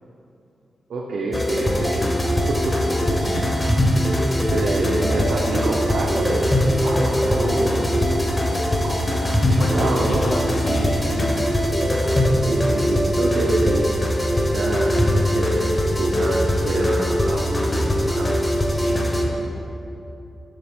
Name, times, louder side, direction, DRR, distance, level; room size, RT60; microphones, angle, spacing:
voice 1, 0.9-2.0 2.5-2.8 3.1-3.2 4.5-7.9 8.8-10.2 12.5-13.8 14.4-18.5, right 2 dB, 80° right, -2 dB, 0.6 m, -27 dB
sound 1, 1.3-19.2, equal, 20° left, 0.8 m, -21 dB
voice 2, 9.6-11.4 18.7-19.4, left 1 dB, 80° left, -2 dB, 1.2 m, -31 dB
7.4 x 5.9 x 3.5 m, 2.8 s
wide cardioid pair, 125°, 0 cm